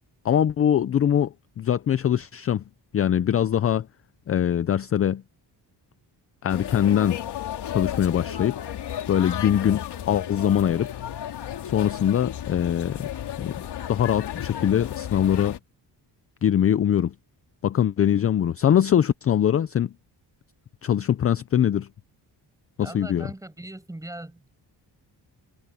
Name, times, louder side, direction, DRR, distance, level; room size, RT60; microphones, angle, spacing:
voice 1, 0.2-2.6 2.9-3.9 4.3-5.2 6.4-7.2 7.7-8.6 9.1-10.9 11.6-13.1 13.4-13.5 13.9-15.6 16.4-17.1 17.6-19.9 20.8-21.9 22.8-23.3, left 9 dB, 35° left, 0.4 m, -22 dB
sound 1, 6.5-15.6, left 10 dB, 75° left, 3.1 m, -33 dB
voice 2, 22.8-24.5, right 1 dB, 10° right, 6.5 m, -39 dB
wide cardioid pair, 170°, 41 cm